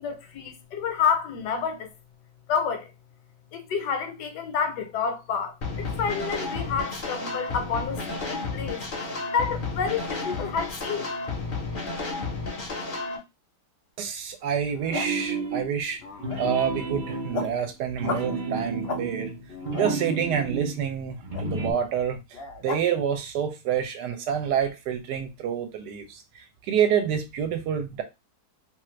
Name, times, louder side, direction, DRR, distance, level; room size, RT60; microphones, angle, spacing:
voice 1, 0.0-1.9 2.5-2.9 3.5-8.8 9.3-11.1, left 6 dB, 75° left, 1.2 m, -29 dB
sound 1, 5.6-13.2, left 3 dB, 45° left, 0.7 m, -32 dB
voice 2, 14.0-16.0 16.4-19.3 19.7-22.2 22.6-28.0, right 8 dB, 75° right, 1.2 m, -28 dB
sound 2, 14.6-15.2 15.9-16.6 17.0-17.6 18.0-18.3 18.8-19.0 19.4-20.0 21.3-21.4 22.3-22.8, left 4 dB, 90° left, 0.5 m, -34 dB
sound 3, 14.9-15.8 16.2-20.8 21.2-21.7, right 3 dB, 55° right, 0.5 m, -31 dB
2.9 x 2.4 x 3.0 m
omnidirectional pair, 1.9 m